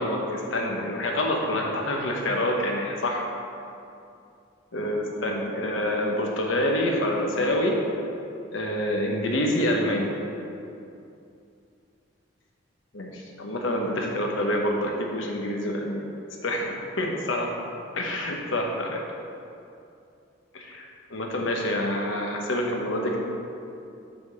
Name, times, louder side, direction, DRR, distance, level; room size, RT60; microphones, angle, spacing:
voice 1, 0.0-3.2 4.7-7.8 8.5-10.1 12.9-16.2 16.4-17.5 17.9-19.0 20.5-23.2, left 1 dB, 75° left, 0 dB, 1.1 m, -27 dB
6.0 x 5.1 x 6.8 m, 2.6 s
head